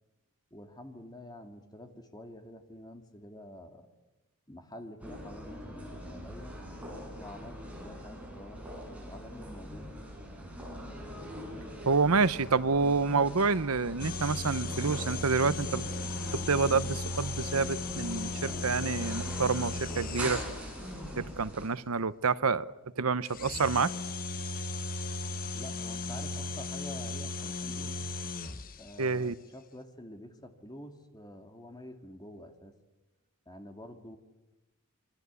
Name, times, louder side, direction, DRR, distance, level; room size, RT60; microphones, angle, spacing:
voice 1, 0.5-3.9 4.5-6.5 7.2-9.9 25.5-28.0 28.8-32.8 33.5-34.2, left 1 dB, 20° left, 5 dB, 2.4 m, -48 dB
sound 1, 5.0-21.7, equal, 5° right, 7.2 m, -42 dB
voice 2, 11.9-15.9 16.3-20.4 21.2-23.9 29.0-29.4, right 4 dB, 90° right, 16 dB, 0.9 m, -28 dB
sound 2, 14.0-20.9 23.2-29.0, left 2 dB, 40° left, 1.1 m, -36 dB
27.5 x 24.5 x 8.3 m, 1.1 s
head